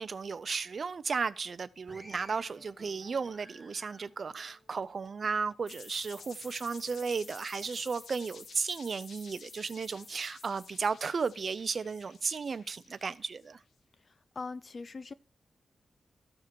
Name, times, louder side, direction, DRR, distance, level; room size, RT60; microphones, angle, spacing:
voice 1, 0.0-13.6, right 5 dB, 45° right, 0.5 m, -34 dB
sound 1, 1.9-5.6 5.9-6.9 7.5-7.8, equal, ahead, 1.1 m, -56 dB
sound 2, 5.7-13.4, left 5 dB, 85° left, 1.1 m, -51 dB
voice 2, 14.0-15.1, left 4 dB, 40° left, 0.4 m, -42 dB
14.0 x 4.9 x 4.5 m
wide cardioid pair, 140°, 0 cm